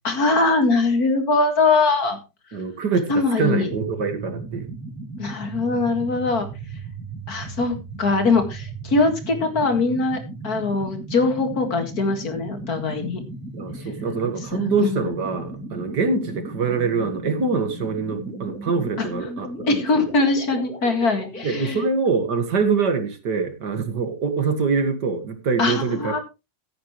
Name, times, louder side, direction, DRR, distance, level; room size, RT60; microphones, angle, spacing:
voice 1, 0.0-2.2 3.1-3.7 5.2-6.5 7.3-13.2 14.5-15.1 19.0-19.1 19.6-21.8 25.6-26.2, left 3 dB, 55° left, 7 dB, 2.4 m, -22 dB
voice 2, 2.5-4.7 13.5-20.0 21.4-26.2, right 5 dB, 65° right, 8 dB, 2.2 m, -24 dB
sound 1, 3.7-21.5, right 2 dB, 5° left, 2.6 m, -36 dB
15.5 x 9.2 x 3.1 m, 0.27 s
omnidirectional pair, 1.9 m